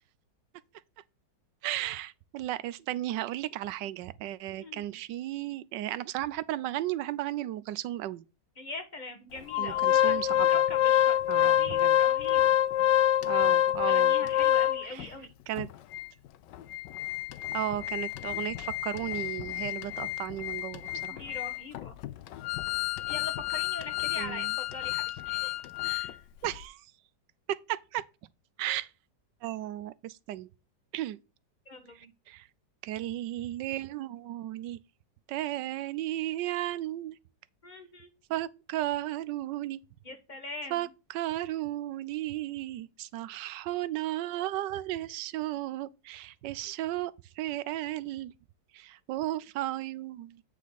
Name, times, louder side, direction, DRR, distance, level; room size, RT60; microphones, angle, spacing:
voice 1, 1.6-8.2 9.6-10.5 11.3-12.0 13.2-14.1 14.8-15.1 15.5-15.7 17.5-21.2 24.2-24.5 26.4-26.8 27.5-28.0 28.6-28.9 29.4-30.5 30.9-31.2 32.3-32.5 32.8-34.8 35.3-37.2 38.3-39.8 40.7-48.3 48.7-50.4, right 14 dB, 80° right, 1.3 m, -34 dB
voice 2, 8.6-12.4 13.8-15.3 21.1-21.9 23.1-25.5 25.8-26.2 31.7-32.1 37.6-38.1 40.0-40.9, left 3 dB, 25° left, 1.5 m, -42 dB
Organ, 9.5-15.1 15.6-15.7 15.9-16.1 16.5-26.1 26.4-26.6, left 12 dB, 80° left, 1.3 m, -27 dB
8.4 x 5.1 x 4.0 m
omnidirectional pair, 1.9 m